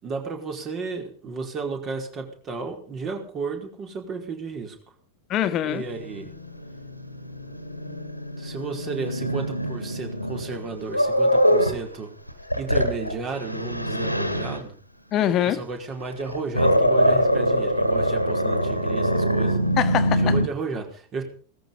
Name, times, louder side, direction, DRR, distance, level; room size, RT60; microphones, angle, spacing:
voice 1, 0.0-4.8 5.6-6.3 8.4-12.1 12.6-14.8 15.4-19.6 20.2-21.2, right 4 dB, 30° right, 4.9 m, -33 dB
voice 2, 5.3-5.8 15.1-15.6 19.8-20.3, left 11 dB, 35° left, 1.7 m, -23 dB
Growling, 5.7-11.8 12.3-14.6 16.0-20.5, equal, 90° left, 1.9 m, -24 dB
18.5 x 14.0 x 5.4 m
figure-of-eight pair, 90°, 0 cm